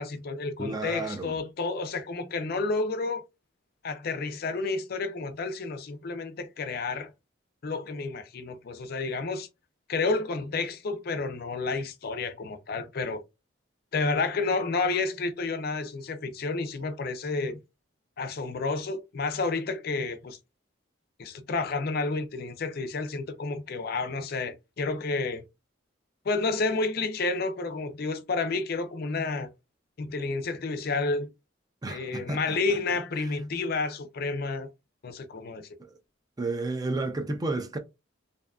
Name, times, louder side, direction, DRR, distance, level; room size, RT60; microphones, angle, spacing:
voice 1, 0.0-3.2 3.8-7.1 7.6-9.5 9.9-13.2 13.9-17.6 18.2-20.4 21.2-25.4 26.2-29.5 30.0-31.3 31.9-34.7 35.0-35.7, left 3 dB, 50° left, 0.4 m, -30 dB
voice 2, 0.6-1.4 31.8-32.6 35.8-35.9 36.4-37.8, right 2 dB, 20° right, 0.4 m, -31 dB
2.6 x 2.4 x 2.3 m
head